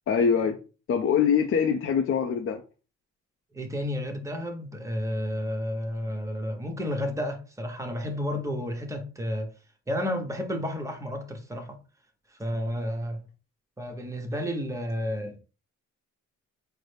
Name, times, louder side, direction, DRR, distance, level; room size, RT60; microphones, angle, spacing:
voice 1, 0.1-0.6 0.9-2.6, left 7 dB, 45° left, 0.5 m, -23 dB
voice 2, 3.5-9.5 9.9-11.8 12.3-13.2 13.8-15.4, equal, 10° right, 0.9 m, -31 dB
3.9 x 2.1 x 3.3 m
cardioid pair, 90°, 30 cm